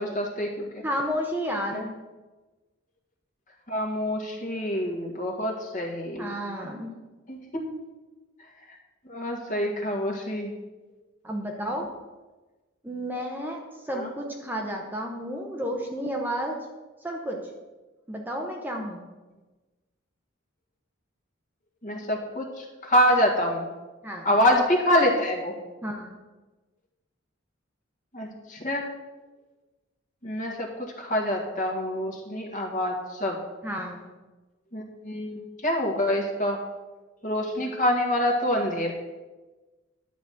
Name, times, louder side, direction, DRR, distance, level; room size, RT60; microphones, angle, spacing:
voice 1, 0.0-0.8 3.7-6.3 7.3-7.4 9.1-10.5 13.9-14.1 21.8-22.5 22.8-23.7 24.3-25.5 28.1-28.8 30.2-30.7 31.0-33.0 33.2-33.4 34.7-36.6 37.2-38.9, left 1 dB, 40° left, 0 dB, 1.8 m, -26 dB
voice 2, 0.8-1.9 6.2-6.9 11.2-11.9 12.8-16.6 17.0-17.4 18.1-19.0 24.0-24.3 25.8-26.2 33.6-34.0, equal, 10° right, 1 dB, 0.9 m, -31 dB
11.0 x 4.2 x 7.7 m, 1.2 s
head